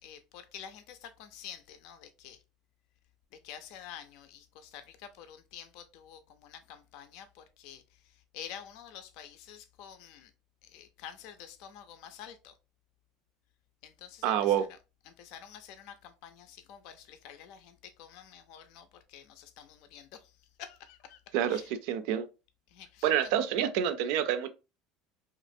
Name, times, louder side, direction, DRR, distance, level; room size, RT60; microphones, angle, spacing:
voice 1, 0.0-2.4 3.4-10.3 10.6-12.5 13.8-14.8 15.0-20.3 20.6-21.2 21.5-21.7 22.7-23.3, left 9 dB, 70° left, 0.5 m, -49 dB
voice 2, 14.2-14.6 21.3-22.3 23.0-24.5, right 10 dB, 75° right, 0.4 m, -28 dB
3.0 x 2.4 x 2.5 m
supercardioid pair, 120°, 0 cm